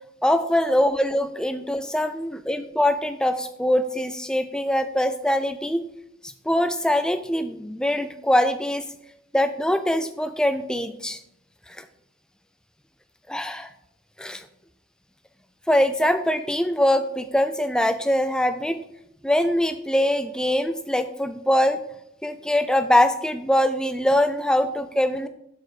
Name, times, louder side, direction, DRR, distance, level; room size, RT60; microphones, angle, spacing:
voice 1, 0.2-5.8 6.2-8.8 9.3-11.2 11.7-11.8 13.3-13.7 14.2-14.4 15.7-18.8 19.2-21.8 22.2-25.3, left 1 dB, 5° left, 9 dB, 0.3 m, -23 dB
6.4 x 4.6 x 4.8 m, 0.76 s
head